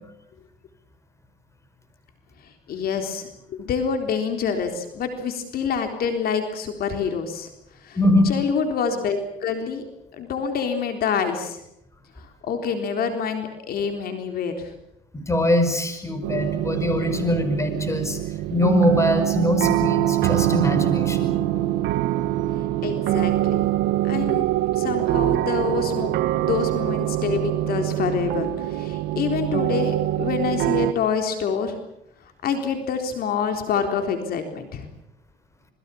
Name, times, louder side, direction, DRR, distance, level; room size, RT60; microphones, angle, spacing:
voice 1, 2.4-7.5 7.8-8.0 8.2-9.8 10.1-11.6 12.2-14.7 22.8-23.7 24.0-24.5 24.7-26.1 26.4-31.8 32.4-34.9, left 6 dB, 65° left, 6 dB, 3.9 m, -27 dB
voice 2, 8.0-8.3 15.1-18.2 18.5-21.3, left 1 dB, 15° left, 8 dB, 5.3 m, -22 dB
sound 1, 16.2-30.9, right 14 dB, 85° right, 1.3 m, -24 dB
27.5 x 22.0 x 7.1 m, 0.79 s
cardioid pair, 110°, 17 cm